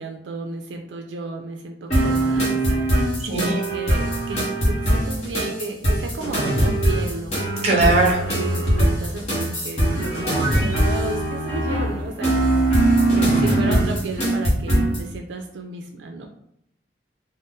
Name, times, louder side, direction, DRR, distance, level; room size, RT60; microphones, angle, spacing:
voice 1, 0.0-12.9 13.1-16.3, right 3 dB, 80° right, 3 dB, 0.3 m, -33 dB
sound 1, 1.9-15.0, right 1 dB, 35° left, 1.0 m, -21 dB
voice 2, 3.2-3.6 7.6-8.2, right 2 dB, 35° right, -1 dB, 0.8 m, -19 dB
2.6 x 2.0 x 3.5 m, 0.72 s
head